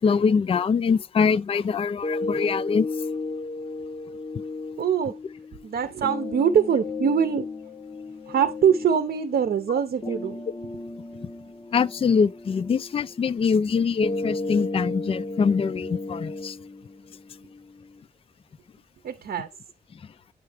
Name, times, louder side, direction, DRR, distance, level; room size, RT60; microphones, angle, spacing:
voice 1, 0.0-2.9 11.7-16.6, left 5 dB, 35° left, 0.3 m, -23 dB
sound 1, 2.0-18.0, left 3 dB, 20° left, 0.8 m, -34 dB
voice 2, 4.8-5.2 5.6-7.5 8.3-10.5 19.0-19.5, right 8 dB, 80° right, 0.7 m, -23 dB
9.5 x 3.2 x 4.9 m
wide cardioid pair, 145°, 16 cm